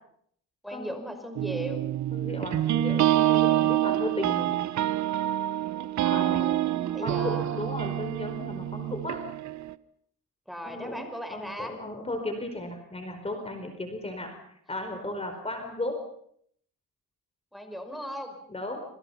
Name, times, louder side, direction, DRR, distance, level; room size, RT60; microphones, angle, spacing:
voice 1, 0.6-1.8 3.5-3.8 6.0-6.4 6.9-7.6 10.5-11.8 17.5-18.4, equal, ahead, 6 dB, 5.5 m, -38 dB
sound 1, 1.4-9.7, right 13 dB, 70° right, 1.0 m, -27 dB
voice 2, 2.1-4.5 6.1-6.6 7.0-9.2 10.6-11.0 11.3-16.0 18.5-18.8, left 1 dB, 20° left, 5 dB, 4.7 m, -35 dB
27.0 x 27.0 x 5.8 m, 0.67 s
cardioid pair, 90°, 30 cm